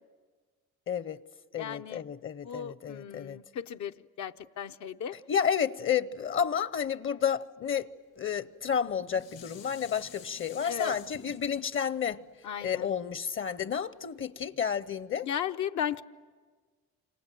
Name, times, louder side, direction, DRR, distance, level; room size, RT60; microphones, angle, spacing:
voice 1, 0.9-1.2 1.5-3.4 5.3-7.9 8.2-12.2 12.6-15.3, left 7 dB, 45° left, 0.8 m, -31 dB
voice 2, 1.6-2.0 2.4-5.2 10.6-11.0 12.4-12.9 15.2-16.0, left 9 dB, 70° left, 0.8 m, -35 dB
Dishes pots and pans, 8.6-13.9 14.4-14.5, left 7 dB, 90° left, 6.7 m, -51 dB
28.5 x 26.5 x 7.7 m
cardioid pair, 90°, 30 cm